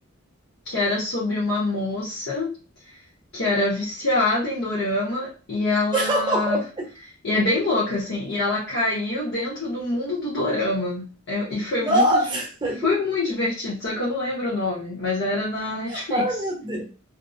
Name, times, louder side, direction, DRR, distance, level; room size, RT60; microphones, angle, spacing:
voice 1, 0.6-2.5 3.3-6.6 7.2-12.2 12.8-16.2, left 2 dB, 60° left, -6 dB, 0.8 m, -25 dB
voice 2, 5.9-6.9 11.8-13.0 15.9-16.9, right 1 dB, 20° right, -2 dB, 0.7 m, -24 dB
2.5 x 2.0 x 2.5 m, 0.35 s
head